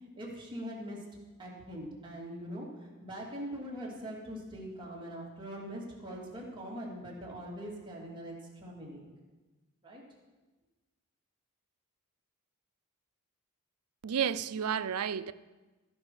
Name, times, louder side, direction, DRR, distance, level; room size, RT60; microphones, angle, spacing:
voice 1, 0.2-1.0 1.4-9.1 9.8-10.0, equal, 20° right, 2.8 m, -42 dB
voice 2, 14.0-15.3, right 8 dB, 80° right, 0.5 m, -31 dB
14.0 x 10.5 x 4.9 m
head